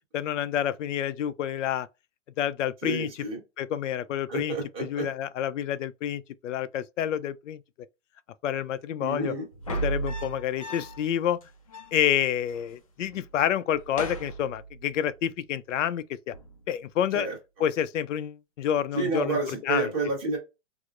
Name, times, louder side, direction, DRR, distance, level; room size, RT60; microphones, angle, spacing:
voice 1, 0.1-1.9 2.4-3.1 3.6-7.6 8.4-9.3 9.8-11.4 11.9-16.3 16.7-17.3 17.6-19.4 19.6-19.9, left 10 dB, 85° left, 0.5 m, -28 dB
voice 2, 2.8-3.4 4.3-5.1 9.0-9.4 17.1-17.4 18.9-20.4, right 3 dB, 15° right, 1.0 m, -29 dB
sound 1, 9.5-11.1 11.4-11.5 11.7-12.7 13.0-13.3 13.7-15.1 16.3-16.7, right 2 dB, 30° left, 0.4 m, -36 dB
4.7 x 2.0 x 2.4 m
hypercardioid pair, 170°, 36 cm